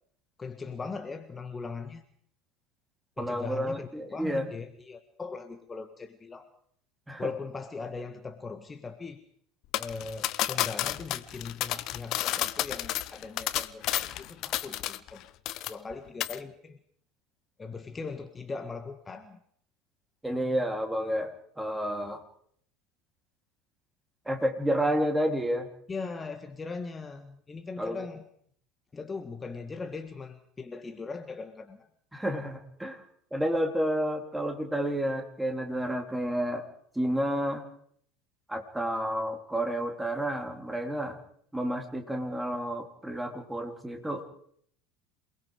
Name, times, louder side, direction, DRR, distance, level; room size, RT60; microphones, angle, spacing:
voice 1, 0.4-2.0 3.2-6.5 7.2-9.2 9.8-15.3 15.7-16.8 17.6-19.4 25.9-28.3 28.9-31.9, left 4 dB, 20° left, 7 dB, 1.7 m, -39 dB
voice 2, 3.2-4.4 7.1-7.3 20.2-22.2 24.3-25.7 27.8-28.0 32.1-33.0 33.3-36.6 37.0-37.6 38.5-41.2 41.5-44.3, equal, 5° right, 4 dB, 3.5 m, -30 dB
sound 1, 9.7-15.2 15.5-15.9 16.2-16.4, left 14 dB, 50° left, 0.9 m, -31 dB
27.5 x 20.5 x 5.0 m, 0.65 s
figure-of-eight pair, 75°, 0 cm